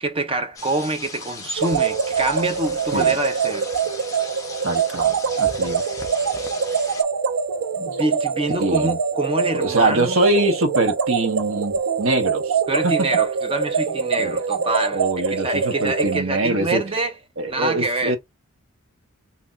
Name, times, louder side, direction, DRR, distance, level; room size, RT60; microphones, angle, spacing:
voice 1, 0.0-3.7 7.8-10.2 12.7-17.1 17.5-18.2, right 2 dB, 25° right, 0.5 m, -26 dB
sound 1, 0.6-7.0, left 3 dB, 15° left, 0.7 m, -37 dB
sound 2, 1.6-16.2, right 6 dB, 80° right, 0.5 m, -24 dB
voice 2, 4.6-5.8 8.6-9.0 9.5-12.9 14.2-14.4 14.9-16.8 17.4-18.2, right 2 dB, 60° right, 1.0 m, -23 dB
2.8 x 2.3 x 3.9 m
head